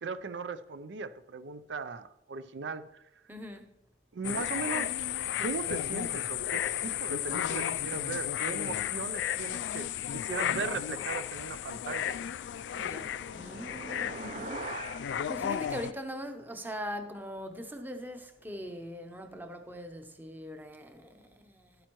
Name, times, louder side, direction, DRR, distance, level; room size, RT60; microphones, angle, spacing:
voice 1, 0.0-3.0 4.1-4.9 5.4-12.2, right 4 dB, 85° right, 0.5 m, -38 dB
voice 2, 3.3-3.7 12.8-14.2 15.3-21.9, equal, 10° right, 0.8 m, -41 dB
sound 1, 4.2-15.9, left 10 dB, 90° left, 0.3 m, -34 dB
sound 2, 12.3-16.8, right 3 dB, 40° right, 0.6 m, -45 dB
12.0 x 8.9 x 3.0 m
head